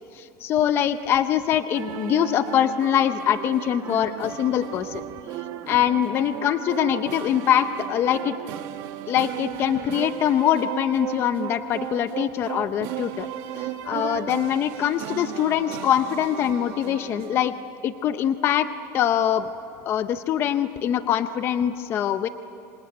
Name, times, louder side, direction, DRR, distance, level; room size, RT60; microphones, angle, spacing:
voice 1, 0.1-5.0 5.7-8.3 9.1-13.3 13.6-17.5 17.8-19.5 19.9-22.3, left 10 dB, 25° left, 11 dB, 0.6 m, -23 dB
sound 1, 1.7-17.5, right 11 dB, 45° right, 1.5 m, -35 dB
26.5 x 25.0 x 9.0 m, 3.0 s
cardioid pair, 175°, 9 cm